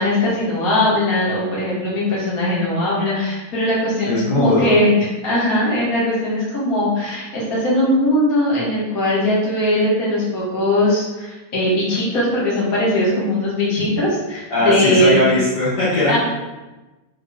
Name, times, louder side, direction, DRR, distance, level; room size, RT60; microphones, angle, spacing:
voice 1, 0.0-4.9 5.2-15.2 15.9-16.2, left 1 dB, 85° left, -7 dB, 0.7 m, -20 dB
voice 2, 4.0-4.7 14.5-16.2, left 1 dB, 50° left, -8 dB, 1.8 m, -18 dB
6.6 x 5.1 x 4.7 m, 1.1 s
omnidirectional pair, 5.4 m